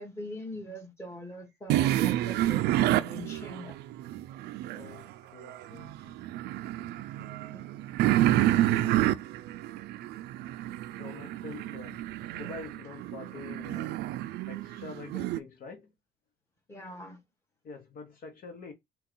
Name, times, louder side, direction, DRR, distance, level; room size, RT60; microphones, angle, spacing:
voice 1, 0.0-3.7 7.2-7.6 8.2-9.0 16.7-17.2, left 1 dB, 15° left, 1.6 m, -42 dB
sound 1, 1.7-5.0 5.4-15.4, right 14 dB, 75° right, 0.4 m, -29 dB
voice 2, 4.7-6.2 11.0-14.0 14.5-15.9 17.6-18.7, left 4 dB, 60° left, 0.9 m, -46 dB
4.4 x 2.3 x 3.8 m
cardioid pair, 110°, 17 cm